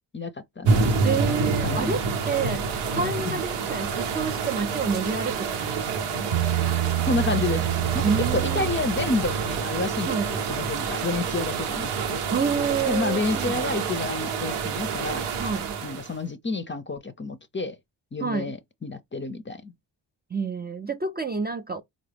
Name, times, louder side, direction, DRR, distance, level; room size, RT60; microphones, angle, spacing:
voice 1, 0.1-1.0 1.6-2.0 3.2-3.4 7.1-7.6 7.9-8.0 8.3-12.2 12.9-15.3 15.8-17.8 18.1-19.7, left 3 dB, 25° left, 0.6 m, -29 dB
sound 1, 0.6-16.2, right 5 dB, 85° right, 0.8 m, -28 dB
voice 2, 1.0-2.6 2.9-6.3 8.0-8.7 10.1-10.3 12.3-13.6 15.4-15.8 18.2-18.5 20.3-21.8, right 5 dB, 20° right, 0.4 m, -28 dB
Bass guitar, 6.3-9.7, right 12 dB, 55° right, 0.7 m, -28 dB
3.8 x 2.0 x 3.3 m
supercardioid pair, 50°, 48 cm